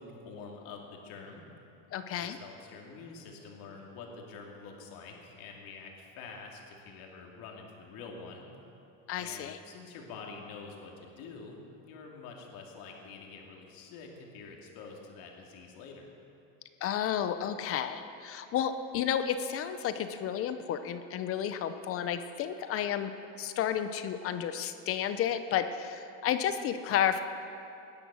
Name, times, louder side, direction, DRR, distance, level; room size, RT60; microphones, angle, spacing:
voice 1, 0.0-1.4 2.2-8.5 9.2-16.1, left 4 dB, 55° left, 1 dB, 2.7 m, -47 dB
voice 2, 1.9-2.4 9.1-9.6 16.8-23.1 23.4-27.2, left 9 dB, 35° left, 10 dB, 0.6 m, -31 dB
18.0 x 10.5 x 6.2 m, 2.8 s
supercardioid pair, 145°, 41 cm